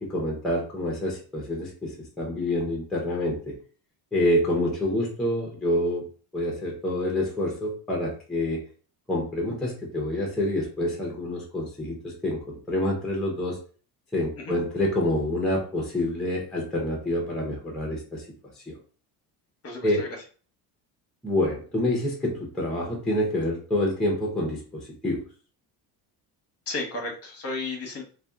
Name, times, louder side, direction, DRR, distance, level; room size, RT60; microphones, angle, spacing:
voice 1, 0.0-3.6 4.1-6.0 6.3-8.6 9.1-13.6 14.1-18.2 18.7-18.8 19.8-20.1 21.2-25.2, left 1 dB, ahead, -2 dB, 0.6 m, -27 dB
voice 2, 19.6-20.1 26.7-28.0, left 3 dB, 35° left, 1 dB, 0.8 m, -33 dB
2.7 x 2.2 x 2.2 m, 0.40 s
cardioid pair, 135°, 40 cm